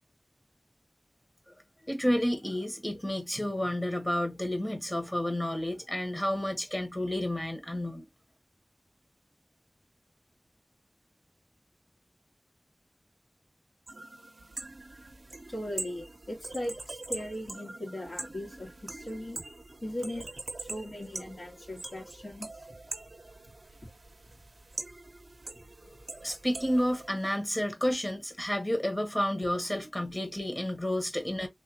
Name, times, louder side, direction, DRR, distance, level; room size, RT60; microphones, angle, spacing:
voice 1, 1.9-8.1 25.8-25.9 26.2-31.5, left 1 dB, 25° left, 1.3 m, -30 dB
sound 1, 13.9-27.1, right 2 dB, 75° right, 0.6 m, -43 dB
voice 2, 15.5-19.4 19.8-20.3 20.6-22.7 23.8-23.9, left 1 dB, 70° left, 1.8 m, -38 dB
3.4 x 2.4 x 2.8 m
wide cardioid pair, 40°, 0 cm